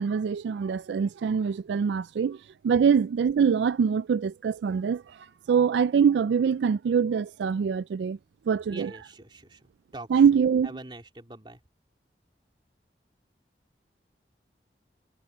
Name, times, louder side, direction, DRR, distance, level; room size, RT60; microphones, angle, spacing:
voice 1, 0.0-8.2 8.5-8.9 10.1-10.7, right 6 dB, 80° right, 0.3 m, -24 dB
voice 2, 8.7-9.7 9.9-11.6, right 2 dB, 25° right, 3.2 m, -44 dB
head